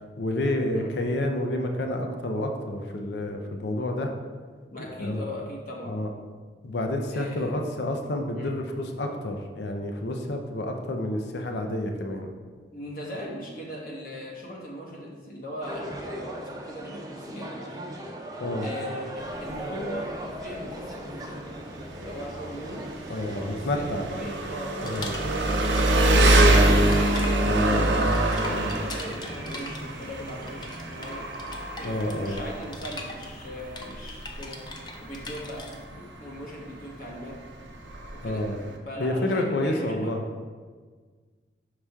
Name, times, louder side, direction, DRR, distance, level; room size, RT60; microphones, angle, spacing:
voice 1, 0.2-4.1 4.8-5.2 5.9-6.1 6.6-12.3 18.4-18.7 23.1-24.0 24.8-25.1 27.4-28.0 28.4-28.7 31.8-32.4 38.2-38.5 39.0-40.2, left 1 dB, 70° left, 4 dB, 0.6 m, -29 dB
voice 2, 4.7-6.0 7.1-7.6 8.3-8.5 12.7-17.8 18.6-21.4 22.0-22.8 23.3-28.0 28.4-31.3 31.8-34.6 35.0-37.4 38.1-38.5 38.9-40.1, equal, 50° left, -2 dB, 1.0 m, -39 dB
sound 1, 15.6-23.4, right 1 dB, 20° right, 0.6 m, -38 dB
Engine, 19.2-38.8, right 1 dB, 85° right, 0.7 m, -26 dB
sound 2, 24.8-25.9 26.2-35.8, left 2 dB, 25° left, 0.5 m, -40 dB
5.6 x 4.8 x 3.5 m, 1.5 s
head